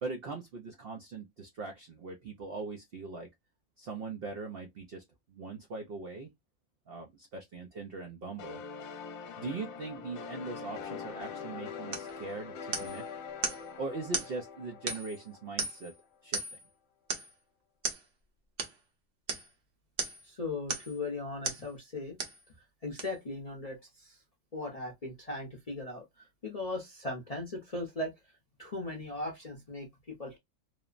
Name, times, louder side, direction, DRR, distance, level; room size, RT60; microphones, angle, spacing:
voice 1, 0.0-3.3 3.8-5.0 5.3-6.3 6.9-8.6 9.4-13.0 13.8-15.9 16.2-16.4, right 3 dB, 65° right, 0.6 m, -40 dB
sound 1, 8.4-15.9, left 6 dB, 70° left, 1.0 m, -43 dB
sound 2, 11.9-12.1 12.7-13.0 13.4-13.6 14.1-14.3 14.9-15.2 15.6-15.9 16.3-16.6 17.1-17.3 17.8-18.0 18.6-18.8 19.3-19.5 20.0-20.3 20.7-21.0 21.4-21.7 22.2-22.4 23.0-23.1, right 4 dB, 50° right, 0.9 m, -35 dB
voice 2, 20.2-22.2 22.8-24.2 24.5-28.1 28.6-30.4, left 2 dB, 40° left, 0.5 m, -38 dB
3.1 x 2.0 x 2.3 m
omnidirectional pair, 1.5 m